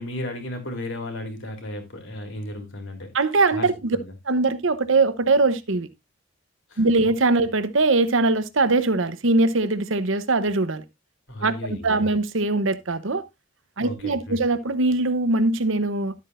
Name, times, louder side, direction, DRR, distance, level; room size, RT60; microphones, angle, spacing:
voice 1, 0.0-3.1 3.5-4.1 6.7-7.1 11.3-12.1 13.8-14.4, left 1 dB, 60° left, 3.3 m, -35 dB
voice 2, 3.1-4.0 4.3-5.9 6.8-10.8 11.4-13.2 13.8-16.1, right 3 dB, 65° right, 0.9 m, -21 dB
12.0 x 8.3 x 2.5 m
head